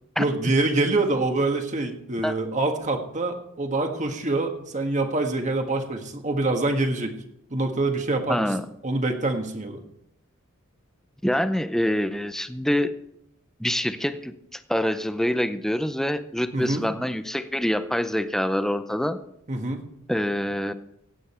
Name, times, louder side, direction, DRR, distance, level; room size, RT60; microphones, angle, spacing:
voice 1, 0.2-7.2 7.5-8.5 8.8-9.8 16.5-16.8 19.5-19.8, right 2 dB, 35° right, 4 dB, 1.6 m, -25 dB
voice 2, 8.3-8.6 11.2-12.9 13.6-19.2 20.1-20.7, equal, ahead, 10 dB, 0.6 m, -25 dB
16.0 x 8.9 x 4.4 m, 0.76 s
head